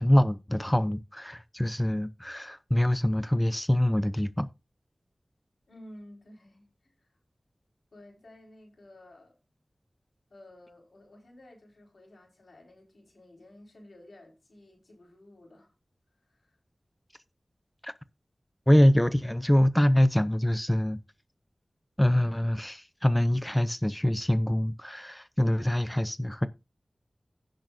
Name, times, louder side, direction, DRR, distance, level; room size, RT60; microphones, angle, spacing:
voice 1, 0.0-4.5 17.8-17.9 18.7-21.0 22.0-26.5, left 1 dB, 10° left, 0.6 m, -24 dB
voice 2, 5.7-7.2 7.9-9.4 10.3-15.7 16.3-16.6, left 1 dB, 90° left, 4.8 m, -53 dB
16.5 x 6.4 x 2.6 m
wide cardioid pair, 80°, 0 cm